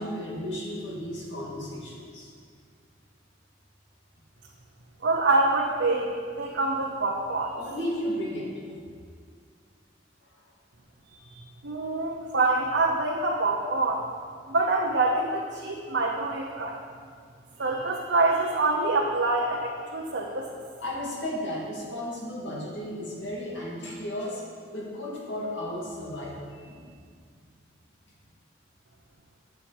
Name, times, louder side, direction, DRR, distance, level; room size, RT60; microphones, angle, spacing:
voice 1, 0.0-2.3 7.5-8.8 20.8-24.4 24.7-26.9, left 1 dB, 75° left, -4 dB, 2.2 m, -34 dB
voice 2, 5.0-7.6 11.3-14.1 14.5-16.8 17.6-20.6, right 2 dB, 70° right, -3 dB, 0.9 m, -26 dB
8.9 x 7.5 x 4.8 m, 2.1 s
head